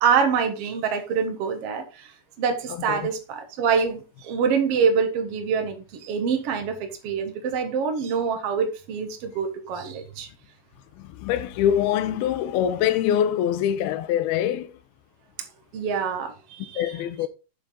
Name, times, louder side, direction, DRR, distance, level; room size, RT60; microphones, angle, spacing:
voice 1, 0.0-10.3 15.7-16.9, right 6 dB, 75° right, 1.3 m, -25 dB
voice 2, 11.0-14.7 16.8-17.3, left 10 dB, 75° left, 2.4 m, -24 dB
7.6 x 7.3 x 3.8 m
omnidirectional pair, 5.1 m